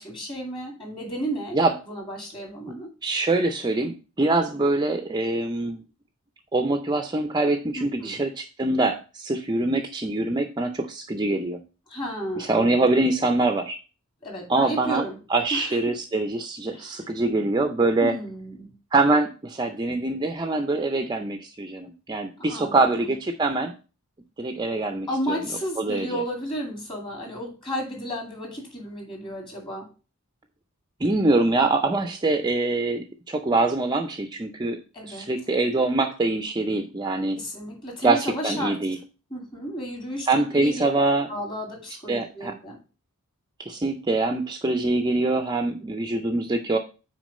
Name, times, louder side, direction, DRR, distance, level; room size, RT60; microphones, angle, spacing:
voice 1, 0.0-1.6 1.8-2.9 7.7-8.2 11.9-13.0 14.2-15.2 15.5-15.8 16.7-17.0 18.0-18.7 22.4-23.1 25.1-29.9 34.9-35.3 37.3-38.8 39.3-40.9 41.3-42.8, equal, 25° left, 1 dB, 2.1 m, -33 dB
voice 2, 3.0-5.8 6.5-11.6 12.4-13.8 14.5-15.0 15.3-18.1 18.9-23.7 24.4-25.4 25.8-26.2 31.0-34.8 35.0-37.4 38.0-38.2 38.4-39.0 40.3-41.3 42.1-42.5 43.6-46.8, right 2 dB, 20° right, 5 dB, 0.5 m, -24 dB
6.1 x 4.4 x 5.3 m, 0.33 s
head